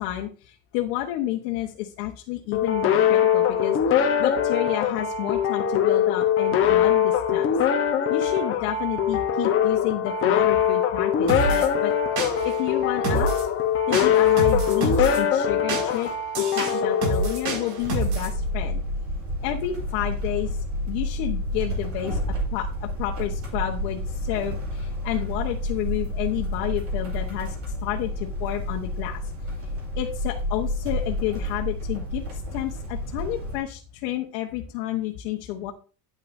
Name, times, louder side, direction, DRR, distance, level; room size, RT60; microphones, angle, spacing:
voice 1, 0.0-3.8 4.2-7.5 8.1-11.9 12.4-13.3 13.9-18.8 19.4-20.6 20.9-29.2 29.6-29.7 30.0-35.7, left 12 dB, 75° left, 1 dB, 1.3 m, -30 dB
sound 1, 2.5-17.9, left 8 dB, 30° left, 1.0 m, -22 dB
sound 2, 11.3-11.7 12.2-12.6 13.0-13.5 13.9-15.2 15.7-18.3, right 3 dB, 70° right, 5.1 m, -27 dB
sound 3, 17.8-33.6, left 1 dB, 30° right, 2.5 m, -30 dB
9.7 x 9.1 x 2.7 m, 0.37 s
cardioid pair, 180°, 47 cm